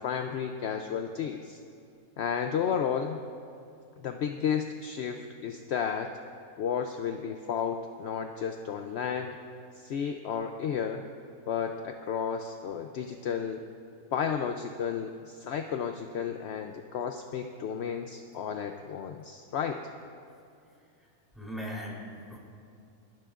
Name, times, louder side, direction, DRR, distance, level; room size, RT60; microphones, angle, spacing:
voice 1, 0.0-1.6 2.2-3.2 4.0-6.1 6.6-9.4 9.8-11.0 11.5-13.6 14.1-19.8, left 7 dB, 65° left, 6 dB, 0.7 m, -32 dB
voice 2, 21.3-22.4, equal, ahead, -4 dB, 3.4 m, -38 dB
29.5 x 12.0 x 2.5 m, 2.5 s
omnidirectional pair, 1.6 m